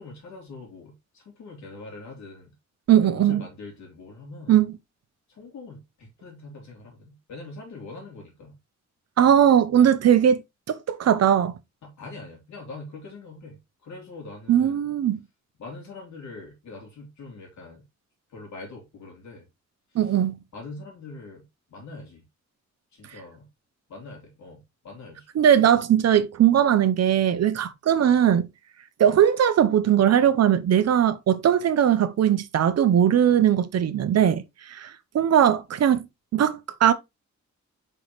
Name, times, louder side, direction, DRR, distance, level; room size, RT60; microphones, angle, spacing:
voice 1, 0.0-2.5 3.0-4.6 5.3-8.5 9.8-9.9 11.8-14.9 15.6-17.8 18.3-19.5 19.9-20.2 20.5-22.2 22.9-23.5 23.9-25.3 27.6-27.7, left 3 dB, 75° left, 3.3 m, -43 dB
voice 2, 2.9-3.4 4.5-4.7 9.2-10.4 10.7-11.6 14.5-15.2 19.9-20.4 25.4-28.5 29.0-34.4 34.7-36.1 36.3-36.9, right 9 dB, 60° right, 0.8 m, -19 dB
6.1 x 5.6 x 3.1 m
wide cardioid pair, 150°, 29 cm